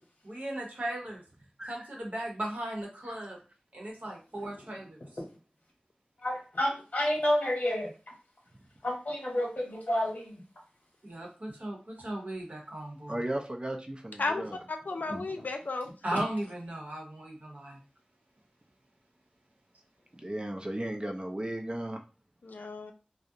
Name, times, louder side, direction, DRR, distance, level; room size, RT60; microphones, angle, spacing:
voice 1, 0.2-1.2 1.6-3.4 3.7-5.0 11.0-13.2 15.1-15.3 16.0-17.8, right 1 dB, 65° right, -1 dB, 0.8 m, -37 dB
voice 2, 6.2-7.9 8.8-10.4, left 1 dB, 65° left, -1 dB, 0.9 m, -29 dB
voice 3, 13.1-14.6 20.2-22.0, right 1 dB, 35° right, 3 dB, 0.5 m, -35 dB
voice 4, 14.2-15.9 22.4-22.9, left 3 dB, 85° left, 4 dB, 0.4 m, -34 dB
2.4 x 2.0 x 2.6 m, 0.33 s
wide cardioid pair, 50°, 3 cm